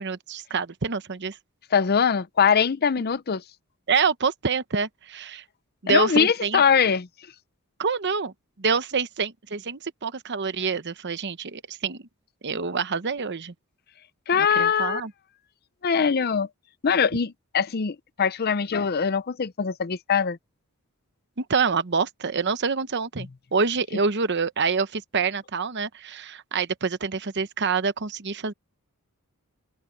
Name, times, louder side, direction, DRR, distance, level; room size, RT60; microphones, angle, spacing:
voice 1, 0.0-1.4 3.9-5.4 5.8-6.6 7.8-12.0 12.4-13.5 14.3-15.1 21.4-28.5, right 5 dB, 50° right, 0.9 m, -26 dB
voice 2, 1.7-3.4 5.9-7.1 14.3-15.0 15.8-16.5 16.8-20.4, left 6 dB, 45° left, 0.6 m, -22 dB
head